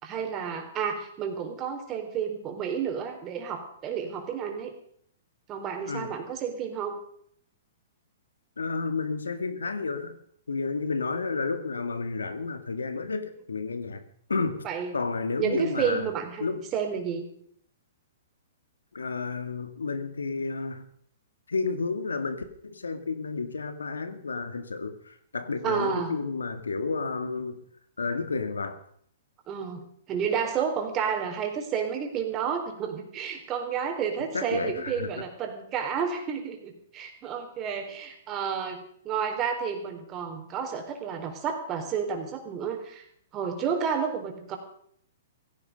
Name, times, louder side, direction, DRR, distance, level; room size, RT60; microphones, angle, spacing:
voice 1, 0.0-4.7 5.5-7.0 14.6-14.9 15.4-17.3 25.6-26.1 29.5-43.0 43.3-44.6, right 7 dB, 30° right, 4 dB, 4.1 m, -31 dB
voice 2, 8.6-10.2 10.5-14.0 14.3-14.7 14.9-16.1 16.4-16.6 18.9-20.8 21.5-27.6 28.0-28.8 34.3-35.1, left 4 dB, 90° left, 10 dB, 1.9 m, -31 dB
16.5 x 16.5 x 5.3 m, 0.64 s
hypercardioid pair, 125°, 0 cm